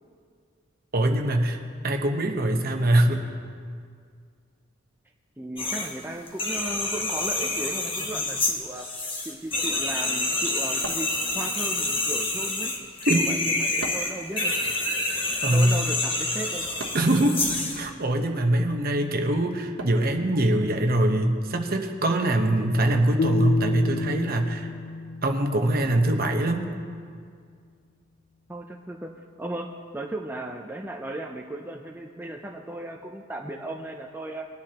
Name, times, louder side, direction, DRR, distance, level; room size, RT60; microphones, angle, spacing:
voice 1, 0.9-1.6 1.8-3.2 13.1-13.2 15.4-15.8 16.9-17.4 17.7-24.7 25.2-26.7, right 1 dB, 50° right, 4 dB, 1.0 m, -23 dB
voice 2, 5.4-8.9 9.2-12.7 13.1-14.7 15.5-16.7 28.5-34.5, right 1 dB, 10° right, 1 dB, 0.5 m, -36 dB
sound 1, 5.6-5.9 6.3-17.8, left 2 dB, 25° left, 1.4 m, -28 dB
sound 2, 10.8-11.7 13.8-14.3 16.8-17.2 19.8-20.2, right 2 dB, 80° right, 1.1 m, -38 dB
sound 3, 23.2-26.3, left 2 dB, 55° left, 0.3 m, -30 dB
20.5 x 10.5 x 2.9 m, 2.1 s
head